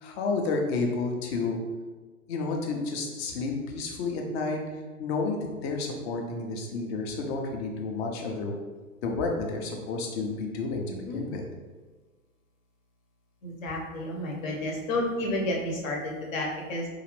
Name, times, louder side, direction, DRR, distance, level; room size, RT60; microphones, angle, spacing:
voice 1, 0.0-1.6 2.3-4.6 5.0-8.6 9.0-11.5, left 3 dB, 45° left, 2 dB, 0.8 m, -31 dB
voice 2, 10.9-11.2 13.4-16.9, left 1 dB, 65° left, -1 dB, 1.2 m, -31 dB
4.7 x 2.5 x 3.2 m, 1.4 s
hypercardioid pair, 120°, 43 cm